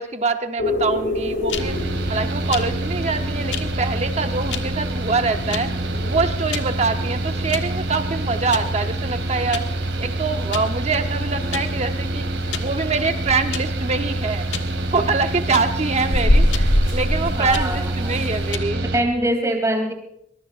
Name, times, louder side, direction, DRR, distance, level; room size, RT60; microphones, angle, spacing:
voice 1, 0.0-1.8 2.1-5.7 6.0-9.7 10.0-12.2 12.6-14.5 14.9-18.9, right 4 dB, 35° right, 6 dB, 1.0 m, -24 dB
sound 1, 0.6-6.3, left 2 dB, 65° left, 2.7 m, -30 dB
sound 2, 1.0-18.6, left 1 dB, 80° left, 1.5 m, -27 dB
Mechanical fan, 1.6-19.0, right 2 dB, 70° right, 2.5 m, -26 dB
voice 2, 17.4-18.3 18.9-19.9, right 1 dB, 15° right, 3 dB, 2.9 m, -23 dB
23.5 x 21.5 x 2.5 m, 0.77 s
head